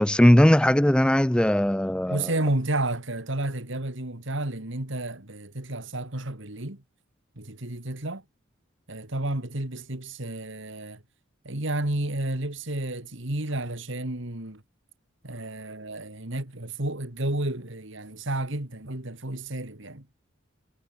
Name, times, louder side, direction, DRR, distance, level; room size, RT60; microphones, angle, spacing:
voice 1, 0.0-2.3, equal, 5° left, 0.5 m, -19 dB
voice 2, 2.1-6.8 7.4-8.2 8.9-11.0 11.4-14.6 15.2-20.1, right 1 dB, 65° right, 2.8 m, -31 dB
head